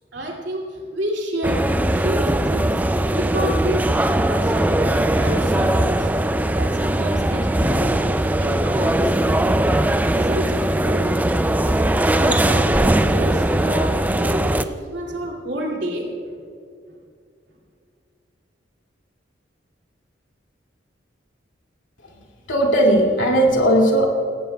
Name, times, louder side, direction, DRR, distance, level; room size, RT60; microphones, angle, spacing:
voice 1, 0.1-1.6 1.9-2.8 3.1-6.1 6.5-11.2 11.5-11.8 12.1-16.1, right 1 dB, 65° right, -1 dB, 2.5 m, -29 dB
sound 1, 1.4-14.6, right 1 dB, 10° right, 0.3 m, -20 dB
voice 2, 22.5-24.1, right 1 dB, 80° left, -1 dB, 2.4 m, -17 dB
17.5 x 15.5 x 2.3 m, 2.4 s
head